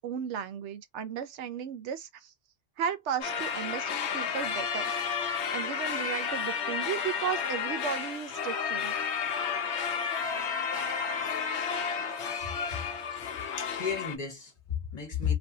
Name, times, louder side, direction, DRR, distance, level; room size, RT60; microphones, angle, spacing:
voice 1, 0.0-2.3 2.8-8.9, right 8 dB, 90° right, 1.0 m, -35 dB
sound 1, 3.2-14.2, left 6 dB, 80° left, 0.9 m, -32 dB
voice 2, 12.4-12.8 13.6-15.4, left 7 dB, 40° left, 1.1 m, -33 dB
3.1 x 2.6 x 2.7 m
omnidirectional pair, 1.1 m